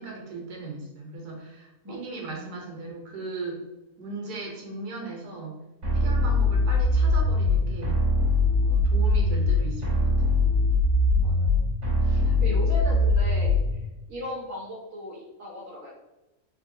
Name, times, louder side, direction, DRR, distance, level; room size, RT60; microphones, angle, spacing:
voice 1, 0.0-3.6 4.0-5.6 5.9-8.0 8.6-10.5 12.1-12.4, right 3 dB, 85° right, -1 dB, 1.4 m, -38 dB
voice 2, 2.3-2.6 11.1-15.9, left 1 dB, 20° right, -4 dB, 0.5 m, -38 dB
sound 1, 5.8-13.8, left 2 dB, 55° right, 1.4 m, -22 dB
3.3 x 2.7 x 2.6 m, 1.0 s
omnidirectional pair, 1.6 m